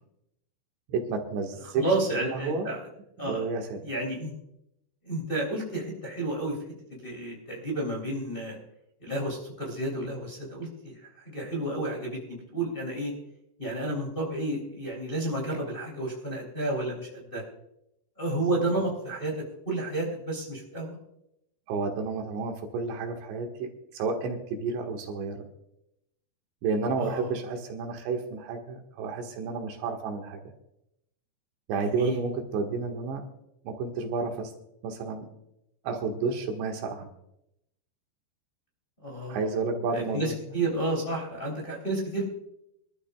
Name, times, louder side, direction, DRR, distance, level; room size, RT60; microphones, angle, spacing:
voice 1, 0.9-1.8 2.1-2.7 3.2-3.8 21.7-25.4 26.6-30.4 31.7-33.2 33.7-34.5 34.8-35.3 35.9-37.1 39.3-40.3, right 4 dB, 85° right, 2 dB, 4.0 m, -31 dB
voice 2, 1.7-2.8 3.2-3.4 3.8-4.3 5.0-6.6 6.9-8.6 9.0-13.1 13.6-17.4 18.2-19.3 19.6-21.0 27.0-27.3 31.8-32.2 39.0-39.5 39.9-42.3, right 1 dB, 15° left, -2 dB, 2.5 m, -31 dB
24.5 x 12.5 x 2.3 m, 0.81 s
omnidirectional pair, 5.0 m